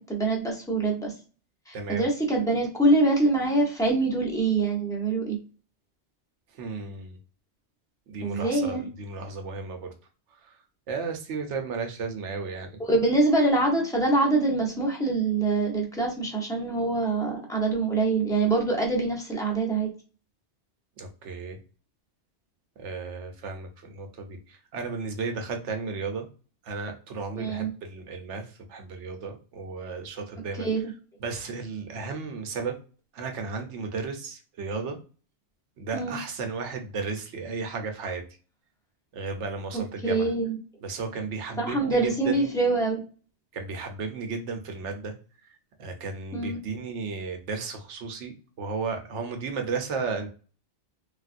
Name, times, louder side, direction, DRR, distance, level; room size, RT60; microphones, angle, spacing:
voice 1, 0.1-1.1 1.7-5.4 8.2-8.9 12.8-19.9 27.4-27.7 30.6-30.9 35.9-36.2 40.0-40.6 41.6-43.0 46.3-46.6, right 2 dB, 5° left, -1 dB, 0.7 m, -24 dB
voice 2, 1.7-2.0 6.5-7.2 8.1-9.9 10.4-10.5 10.9-12.8 21.0-21.6 22.8-26.3 26.6-30.7 31.2-32.8 33.1-35.0 35.8-38.2 39.1-40.3 40.8-42.5 43.5-45.1 45.4-45.5 45.8-50.3, right 4 dB, 85° right, 5 dB, 1.0 m, -34 dB
3.4 x 2.4 x 2.5 m, 0.37 s
omnidirectional pair, 1.2 m